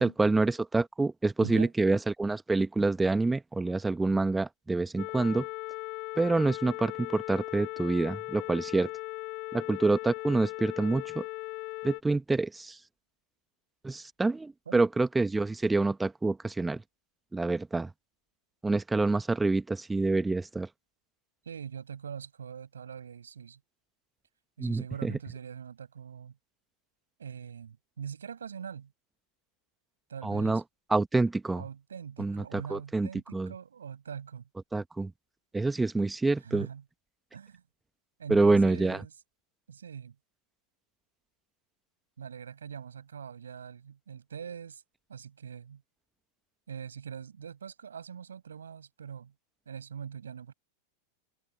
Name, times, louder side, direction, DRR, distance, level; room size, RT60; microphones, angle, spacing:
voice 1, 0.0-5.5 6.2-8.9 9.5-11.2 11.8-12.8 13.8-16.8 17.3-17.9 18.6-20.7 24.6-25.1 30.2-30.6 30.9-31.6 32.2-33.5 34.7-35.1 35.5-36.7 38.3-39.0, right 3 dB, 10° right, 1.3 m, -27 dB
voice 2, 1.4-1.7 14.7-14.8 21.4-23.6 24.6-26.4 27.2-28.9 30.1-30.6 31.5-34.5 36.4-36.8 37.3-37.6 38.2-39.1 39.7-40.2 42.2-44.8 45.1-45.8 46.7-49.3 49.7-50.5, right 7 dB, 70° right, 7.8 m, -42 dB
sound 1, 5.0-12.0, left 23 dB, 40° left, 1.5 m, -38 dB
figure-of-eight pair, 90°, 0 cm